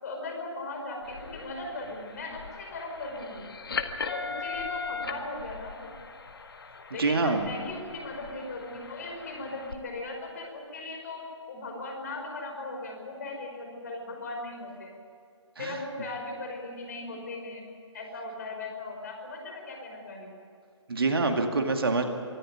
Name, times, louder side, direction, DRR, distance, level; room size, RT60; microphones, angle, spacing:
voice 1, 0.0-3.4 4.1-5.9 6.9-14.9 15.6-17.6 17.9-20.3, left 2 dB, 35° left, 2 dB, 5.2 m, -38 dB
sound 1, 1.0-9.7, left 5 dB, 50° left, 1.8 m, -39 dB
voice 2, 7.0-7.5 15.6-15.8 20.9-22.0, right 3 dB, 50° right, 5 dB, 2.3 m, -25 dB
24.5 x 14.0 x 9.4 m, 2.5 s
figure-of-eight pair, 145°, 16 cm